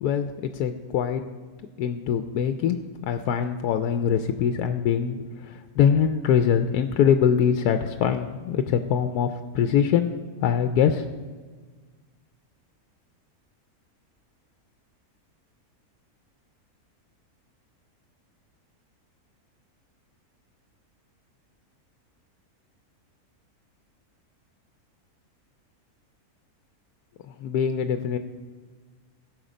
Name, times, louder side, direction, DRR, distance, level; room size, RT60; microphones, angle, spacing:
voice 1, 0.0-1.2 1.8-10.1 10.4-11.0 27.4-28.2, left 8 dB, 90° left, 8 dB, 1.1 m, -23 dB
17.0 x 6.5 x 5.1 m, 1.4 s
omnidirectional pair, 1.6 m